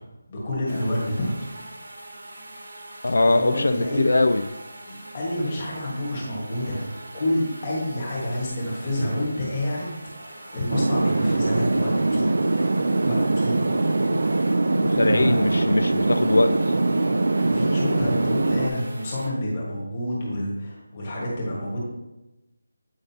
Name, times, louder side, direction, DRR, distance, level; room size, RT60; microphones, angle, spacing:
voice 1, 0.3-1.5 1.7-1.8 3.2-4.0 4.9-6.9 7.1-12.3 13.0-13.6 14.9-15.4 17.4-21.8, left 1 dB, 20° left, -5 dB, 1.4 m, -28 dB
sound 1, 0.7-19.3, right 1 dB, 70° right, 1.4 m, -42 dB
voice 2, 3.0-4.5 14.8-16.7, left 2 dB, 70° left, 8 dB, 0.3 m, -21 dB
sound 2, 10.7-18.7, right 2 dB, 55° right, 0.4 m, -22 dB
8.9 x 4.8 x 2.8 m, 1.0 s
figure-of-eight pair, 180°, 0 cm